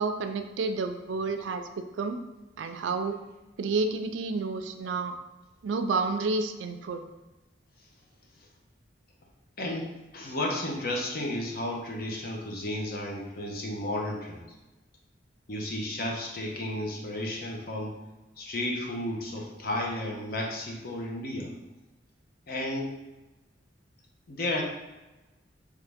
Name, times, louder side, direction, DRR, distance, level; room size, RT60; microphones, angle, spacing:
voice 1, 0.0-2.2 2.6-3.2 3.6-5.1 5.6-7.0, right 3 dB, 90° right, 8 dB, 0.4 m, -30 dB
voice 2, 9.6-9.9 10.1-14.4 15.5-18.0 18.4-21.5 22.5-23.0 24.3-24.6, left 1 dB, 55° left, -1 dB, 0.8 m, -33 dB
3.6 x 3.1 x 3.5 m, 1.1 s
head